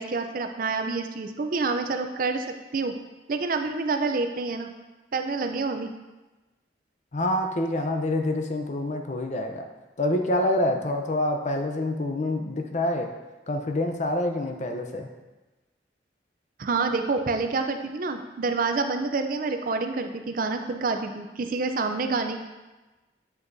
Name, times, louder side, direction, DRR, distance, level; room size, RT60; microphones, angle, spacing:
voice 1, 0.0-3.0 3.3-4.7 5.1-5.9 16.6-22.4, right 4 dB, 50° right, 7 dB, 0.5 m, -27 dB
voice 2, 7.1-9.7 10.0-13.1 13.5-15.1, left 1 dB, 40° left, 5 dB, 0.6 m, -26 dB
7.9 x 6.0 x 2.6 m, 1.1 s
head